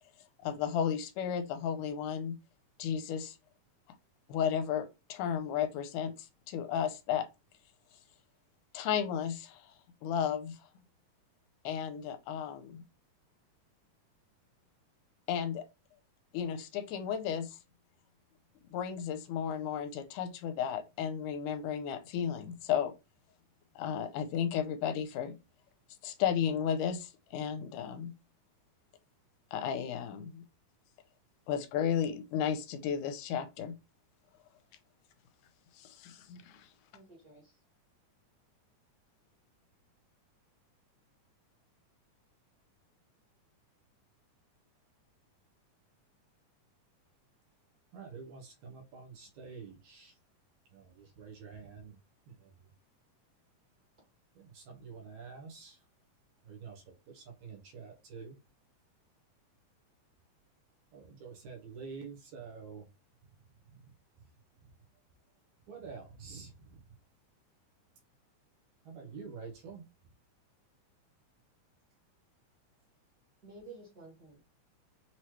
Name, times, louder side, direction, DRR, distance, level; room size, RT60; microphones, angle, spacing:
voice 1, 0.4-2.4 2.8-3.4 4.3-7.3 8.7-9.7 10.0-10.6 11.6-12.8 15.3-15.6 16.3-17.6 18.7-22.9 23.8-25.4 26.0-28.1 29.5-30.4 31.5-33.7 35.7-36.7, left 8 dB, 85° left, 2.1 m, -33 dB
voice 2, 36.9-37.6 73.4-74.4, right 3 dB, 35° right, 1.8 m, -52 dB
voice 3, 47.9-50.2 50.7-52.0 52.3-52.7 54.3-55.8 56.4-58.4 60.9-62.9 63.7-63.9 64.6-64.7 65.7-66.8 68.8-69.8, right 5 dB, 70° right, 2.2 m, -48 dB
5.8 x 3.0 x 3.1 m
omnidirectional pair, 3.7 m